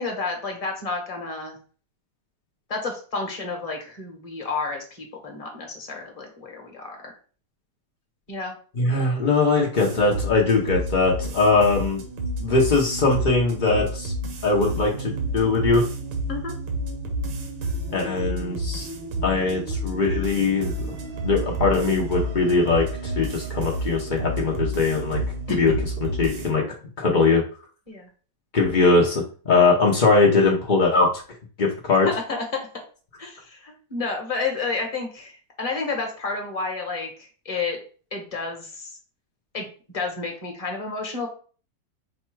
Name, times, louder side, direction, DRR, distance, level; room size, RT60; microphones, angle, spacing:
voice 1, 0.0-1.6 2.7-7.1 8.3-8.6 16.3-16.5 25.5-25.7 27.9-28.1 32.0-32.6 33.2-37.8 38.1-38.9 39.5-39.7 39.9-41.3, left 3 dB, 25° left, 1 dB, 0.9 m, -30 dB
voice 2, 8.8-12.0 12.4-14.1 14.4-15.8 17.9-18.8 19.2-20.9 21.2-25.2 25.5-26.6 27.0-27.4 28.5-31.1 31.6-32.1, left 3 dB, 65° left, -2 dB, 0.4 m, -21 dB
sound 1, 9.8-26.5, right 1 dB, 85° right, 1.6 m, -30 dB
5.2 x 2.3 x 4.4 m, 0.40 s
omnidirectional pair, 2.0 m